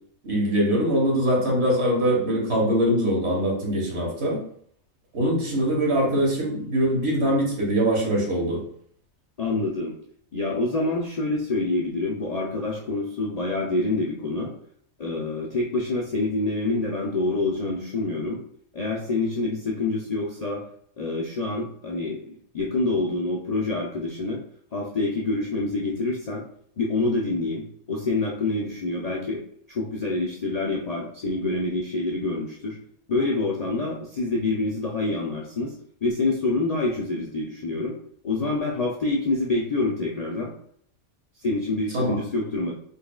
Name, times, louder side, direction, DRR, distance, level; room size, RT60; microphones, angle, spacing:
voice 1, 0.2-4.4 5.1-8.6 41.9-42.2, equal, 50° right, -3 dB, 1.6 m, -23 dB
voice 2, 9.4-9.9 10.3-14.5 15.0-18.4 18.7-20.6 21.0-24.4 24.7-26.4 26.8-32.8 33.1-35.7 36.0-38.0 38.2-40.5 41.4-42.7, left 2 dB, 75° left, -3 dB, 0.3 m, -26 dB
3.8 x 3.6 x 2.3 m, 0.63 s
omnidirectional pair, 1.4 m